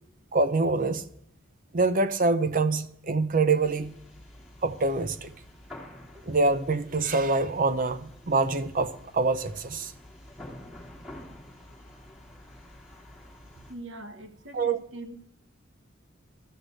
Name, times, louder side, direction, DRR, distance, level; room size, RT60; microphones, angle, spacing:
voice 1, 0.3-1.0 1.7-3.9 4.6-5.3 6.3-9.9 14.5-14.8, right 3 dB, 45° right, 0.7 m, -25 dB
sound 1, 3.6-13.7, left 1 dB, 5° right, 3.1 m, -49 dB
voice 2, 13.7-15.1, right 1 dB, 65° right, 1.2 m, -42 dB
13.5 x 6.6 x 7.7 m
head